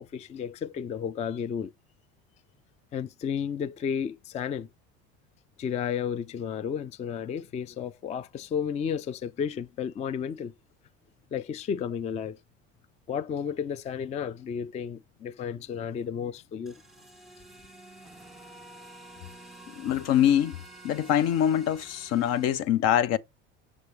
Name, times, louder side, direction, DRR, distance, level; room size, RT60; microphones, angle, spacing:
voice 1, 0.0-1.7 2.9-4.7 5.6-10.5 11.3-12.4 13.1-16.8, left 7 dB, 25° left, 0.3 m, -32 dB
sound 1, 16.7-22.6, right 1 dB, ahead, 1.4 m, -49 dB
voice 2, 19.8-20.6 20.8-23.2, left 10 dB, 60° left, 0.6 m, -24 dB
6.6 x 6.0 x 3.1 m
cardioid pair, 120°, 29 cm